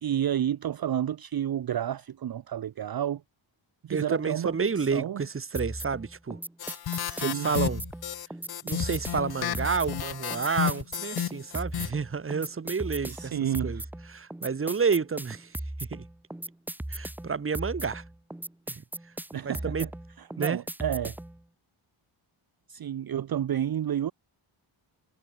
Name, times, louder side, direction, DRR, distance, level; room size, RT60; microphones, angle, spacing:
voice 1, 0.0-3.2 3.8-5.2 7.0-7.5 13.1-13.9 19.3-19.9 20.2-21.2 22.7-24.1, right 10 dB, 50° right, 0.7 m, -30 dB
voice 2, 3.9-6.4 7.2-7.8 8.6-13.3 13.6-13.8 14.1-15.5 15.9-16.0 16.9-18.0 18.7-18.8 19.4-19.9 20.4-20.6, right 5 dB, 25° right, 1.1 m, -30 dB
sound 1, 5.5-21.4, right 1 dB, 5° right, 0.4 m, -38 dB
sound 2, 6.6-11.9, left 10 dB, 50° left, 0.7 m, -32 dB
wide cardioid pair, 170°, 47 cm